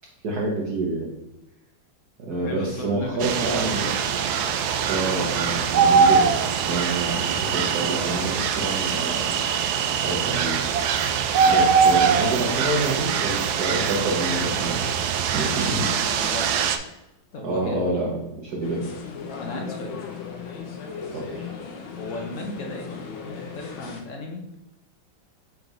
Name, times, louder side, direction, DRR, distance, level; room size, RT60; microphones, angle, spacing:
voice 1, 0.2-1.2 2.2-3.9 4.8-9.6 10.0-14.9 15.3-15.9 17.4-18.9 21.1-21.5, right 2 dB, 55° right, -4 dB, 1.4 m, -28 dB
voice 2, 2.4-3.9 16.0-16.5 17.3-17.8 19.4-20.0 22.0-24.4, left 1 dB, 50° left, 1 dB, 1.0 m, -34 dB
sound 1, 3.2-16.8, right 6 dB, 80° right, 0.8 m, -22 dB
sound 2, 18.6-24.0, left 6 dB, 75° left, 1.6 m, -37 dB
4.7 x 3.9 x 5.1 m, 0.94 s
omnidirectional pair, 2.2 m